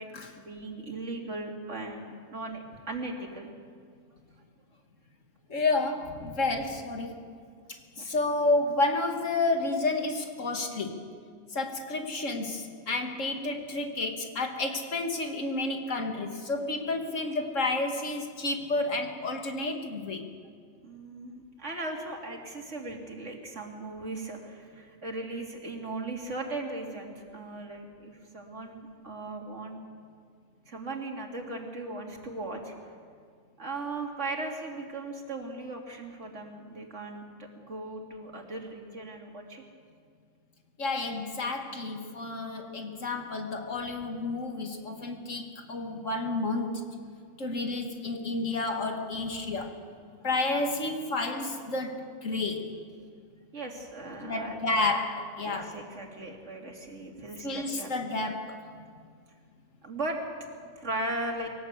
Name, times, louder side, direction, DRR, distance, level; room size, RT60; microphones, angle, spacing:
voice 1, 0.4-3.5 6.2-6.6 8.0-8.1 20.8-29.8 30.7-32.7 33.6-39.6 49.2-49.4 53.5-54.6 55.4-57.9 59.8-60.2 60.8-61.5, right 2 dB, 70° right, 1 dB, 3.0 m, -38 dB
voice 2, 5.5-7.2 8.0-10.9 11.5-20.3 40.8-46.8 47.4-49.9 50.2-52.8 54.2-55.8 57.4-58.7, left 2 dB, 80° left, 4 dB, 2.4 m, -30 dB
22.5 x 18.0 x 8.2 m, 2.1 s
omnidirectional pair, 1.3 m